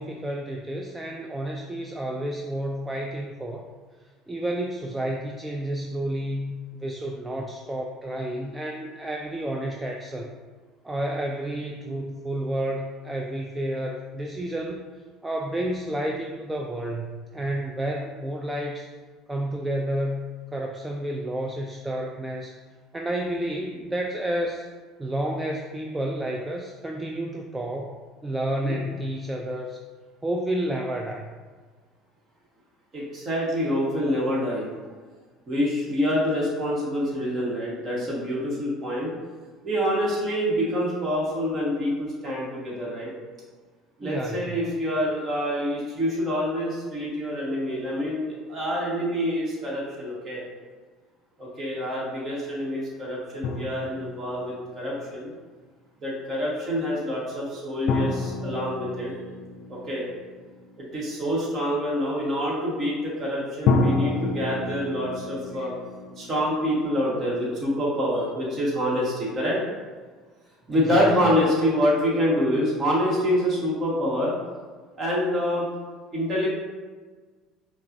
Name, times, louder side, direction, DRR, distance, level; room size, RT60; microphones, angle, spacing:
voice 1, 0.0-3.7 4.3-10.3 10.8-14.8 15.2-18.9 19.3-20.2 20.5-22.5 22.9-24.7 25.0-29.8 30.2-31.2 44.0-44.5 70.7-71.0, right 1 dB, 15° right, 1 dB, 0.3 m, -30 dB
voice 2, 32.9-34.7 35.5-39.1 39.6-43.1 44.0-50.4 51.4-55.3 56.0-59.1 59.7-60.0 60.8-65.7 66.2-69.6 70.7-74.3 75.0-75.7 76.1-76.5, equal, 40° right, -5 dB, 1.5 m, -26 dB
sound 1, 53.4-55.2 57.9-60.7 63.7-67.5, left 3 dB, 60° left, 0.4 m, -29 dB
5.4 x 2.4 x 2.6 m, 1.4 s
hypercardioid pair, 80°, 0 cm